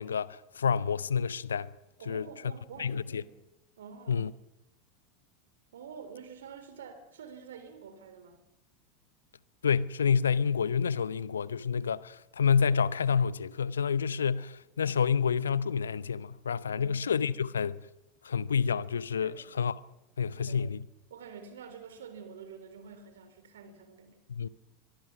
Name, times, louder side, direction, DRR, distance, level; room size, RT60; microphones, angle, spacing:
voice 1, 0.0-1.7 2.1-2.3 2.8-3.2 4.1-4.3 9.6-17.8 18.2-19.7 20.2-20.8 24.3-24.5, left 6 dB, 75° left, 0.8 m, -28 dB
voice 2, 2.0-3.3 3.8-4.3 5.7-8.4 16.7-17.4 19.2-19.3 20.4-20.6 21.1-24.3, right 6 dB, 70° right, 3.5 m, -48 dB
23.0 x 23.0 x 6.1 m
figure-of-eight pair, 85°, 0 cm